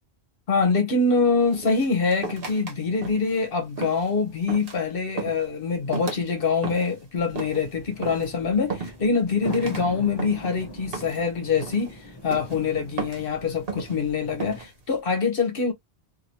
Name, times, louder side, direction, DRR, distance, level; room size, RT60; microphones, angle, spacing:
voice 1, 0.5-15.7, left 4 dB, 60° left, 1.1 m, -24 dB
sound 1, 1.5-2.7 3.0-3.4 3.8-4.1 4.5-4.8 5.2-5.5 5.9-6.2 6.6-7.0 7.4-7.7 8.0-8.3 8.7-9.2 9.4-9.8 10.2-10.6 10.9-11.3 11.6-11.9 12.3-12.6 13.0-13.3 13.7-14.0 14.4-14.7, right 4 dB, 60° right, 1.2 m, -34 dB
sound 2, 7.2-14.6, equal, 30° left, 0.6 m, -41 dB
2.9 x 2.7 x 2.7 m
omnidirectional pair, 1.1 m